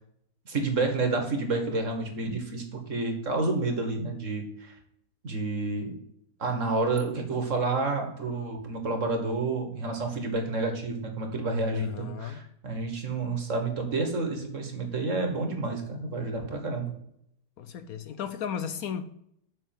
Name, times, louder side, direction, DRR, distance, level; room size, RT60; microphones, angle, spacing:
voice 1, 0.5-4.7 5.2-5.9 6.4-16.9, right 3 dB, 50° right, 4 dB, 1.9 m, -29 dB
voice 2, 11.7-12.4 17.6-19.0, left 8 dB, 65° left, 11 dB, 1.0 m, -35 dB
7.2 x 5.8 x 7.5 m, 0.75 s
omnidirectional pair, 1.8 m